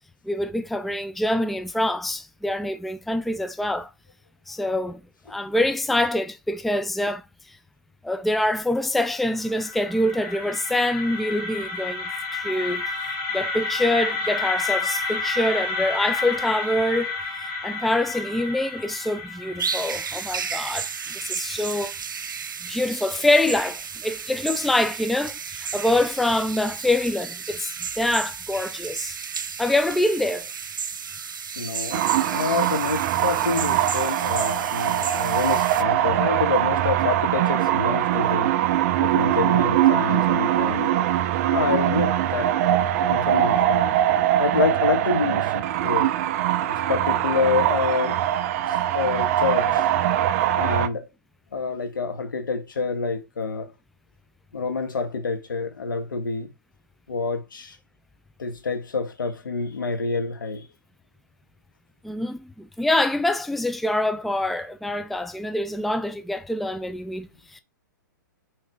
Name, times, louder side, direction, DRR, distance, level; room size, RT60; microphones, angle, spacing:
voice 1, 0.2-3.9 4.5-5.0 5.3-7.6 8.0-12.8 13.3-17.2 17.6-21.9 22.6-27.7 28.0-29.2 29.6-30.5 41.1-41.2 62.0-67.6, left 1 dB, ahead, 0.4 m, -25 dB
sound 1, 9.3-21.2, left 3 dB, 30° left, 3.1 m, -30 dB
sound 2, 19.6-35.8, right 6 dB, 80° right, 0.8 m, -33 dB
voice 2, 31.6-38.5 39.0-41.0 41.5-42.5 43.1-43.9 44.4-46.1 46.7-48.2 48.9-49.9 50.5-51.1 51.5-53.7 54.5-56.5 57.1-57.8 58.4-60.7, left 4 dB, 80° left, 1.7 m, -27 dB
sound 3, 31.9-50.9, right 12 dB, 45° right, 0.6 m, -22 dB
4.8 x 4.1 x 4.7 m
hypercardioid pair, 125°, 11 cm